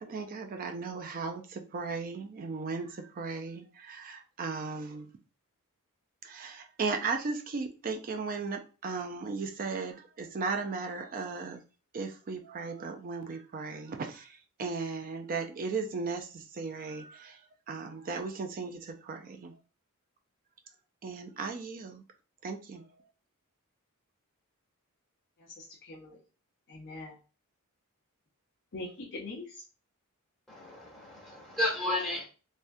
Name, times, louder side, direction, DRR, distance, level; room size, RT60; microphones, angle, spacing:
voice 1, 0.0-5.1 6.2-11.6 11.9-19.6 21.0-22.0 22.4-22.9, right 4 dB, 40° right, 0.4 m, -36 dB
voice 2, 25.4-26.2 26.7-27.2 28.7-29.6, left 2 dB, 50° left, 0.6 m, -43 dB
voice 3, 30.5-32.2, left 1 dB, ahead, 1.3 m, -32 dB
3.4 x 2.2 x 2.5 m
head